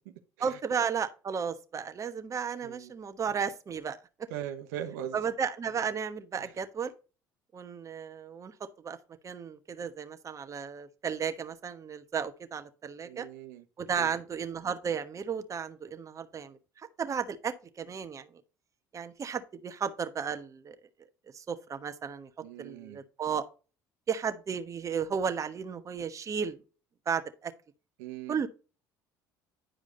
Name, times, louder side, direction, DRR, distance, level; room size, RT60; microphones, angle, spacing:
voice 1, 0.4-4.0 5.1-6.9 7.5-8.5 8.8-9.0 9.2-13.3 13.8-18.3 18.9-20.7 21.3-22.3 22.6-23.4 24.1-26.6 27.1-27.5 28.3-28.5, right 6 dB, 35° right, 1.2 m, -34 dB
voice 2, 4.3-5.2 13.0-13.6 14.0-14.1 22.4-23.0 28.0-28.4, right 10 dB, 85° right, 1.0 m, -40 dB
10.0 x 4.9 x 3.9 m
supercardioid pair, 80°, 9 cm